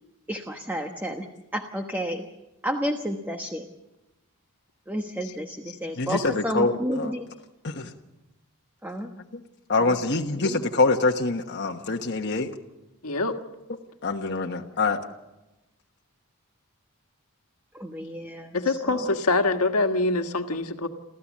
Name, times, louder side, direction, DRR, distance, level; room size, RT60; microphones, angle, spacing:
voice 1, 0.3-1.3 1.5-2.3 2.6-3.7 4.9-7.2 8.8-9.1 9.8-9.9 10.4-10.6 17.7-18.6 18.9-19.0, equal, 10° right, 4 dB, 1.2 m, -31 dB
voice 2, 6.0-7.1 7.6-7.9 9.3-9.4 9.7-12.5 14.0-15.0, left 3 dB, 50° left, 2 dB, 1.2 m, -25 dB
voice 3, 13.0-13.4 18.5-20.9, left 2 dB, 85° left, 5 dB, 1.7 m, -24 dB
29.0 x 14.5 x 7.4 m, 1.0 s
head